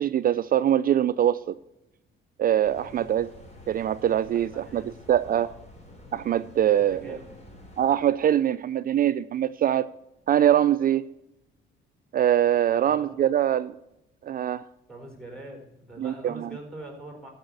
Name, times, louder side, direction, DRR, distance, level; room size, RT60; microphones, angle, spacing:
voice 1, 0.0-1.5 2.4-3.3 3.7-4.8 5.1-5.5 6.1-7.0 7.8-9.9 10.3-11.1 12.1-13.7 14.2-14.6 16.0-16.5, right 10 dB, 50° right, 13 dB, 0.4 m, -23 dB
sound 1, 2.6-8.2, left 1 dB, 35° left, 3.1 m, -49 dB
voice 2, 2.9-3.2 4.3-4.9 5.2-5.6 6.7-7.3 12.7-13.2 14.9-17.3, right 1 dB, 5° left, 2 dB, 4.1 m, -43 dB
13.5 x 4.9 x 7.9 m, 0.89 s
cardioid pair, 90°, 20 cm